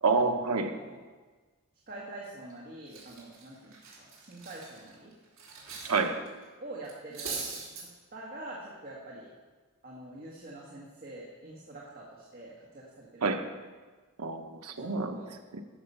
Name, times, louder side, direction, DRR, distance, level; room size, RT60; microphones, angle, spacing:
voice 1, 0.0-0.8 5.8-6.2 13.2-13.4 14.2-15.2 15.5-15.6, right 4 dB, 85° right, 5 dB, 1.1 m, -28 dB
voice 2, 0.6-1.0 1.9-5.1 6.6-7.4 7.8-9.3 9.8-13.3 14.8-15.3, right 2 dB, 40° right, -3 dB, 1.6 m, -45 dB
Cutlery silverware, 2.3-2.5 2.9-6.0 6.3-6.4 6.8-7.8, right 4 dB, 60° right, 3.3 m, -41 dB
13.0 x 6.9 x 5.6 m, 1.3 s
head